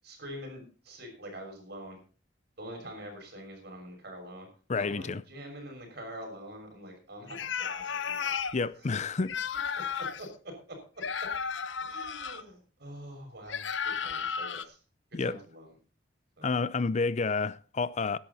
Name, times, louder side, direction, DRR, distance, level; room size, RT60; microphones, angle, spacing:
voice 1, 0.0-2.0 2.6-4.5 4.8-8.3 10.0-11.3 11.8-14.8 15.2-15.7 16.4-16.5, equal, 60° right, 6.5 m, -45 dB
voice 2, 4.7-5.2 8.5-9.4 15.1-15.4 16.4-18.2, left 4 dB, 40° left, 0.5 m, -29 dB
sound 1, 7.3-8.6 9.2-10.3 11.0-12.4 13.5-14.6, left 6 dB, 80° left, 0.9 m, -33 dB
16.0 x 11.5 x 4.2 m
head